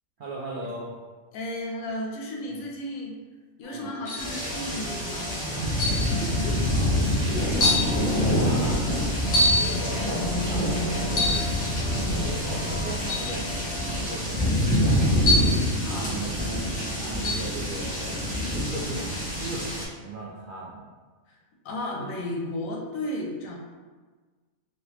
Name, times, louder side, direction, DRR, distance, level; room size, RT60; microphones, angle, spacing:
voice 1, 0.2-0.9 2.5-2.6 3.7-3.9 6.1-9.2 9.5-11.7 12.1-15.2 15.8-20.8, right 3 dB, 70° right, -5 dB, 0.5 m, -38 dB
voice 2, 1.3-3.1 3.6-5.3 15.8-16.2 21.6-23.6, left 1 dB, 75° left, 0 dB, 1.0 m, -33 dB
sound 1, 3.6-14.2, left 1 dB, 30° right, 1.1 m, -41 dB
sound 2, 4.1-4.4 5.8-6.1 6.9-7.0 7.6-7.9 9.3-9.7 11.1-11.5 13.1-13.3 15.3-15.7 17.2-17.5, left 1 dB, 55° left, 0.7 m, -24 dB
sound 3, 4.2-19.8, equal, 10° left, 0.5 m, -26 dB
3.2 x 2.9 x 2.9 m, 1.4 s
omnidirectional pair, 1.5 m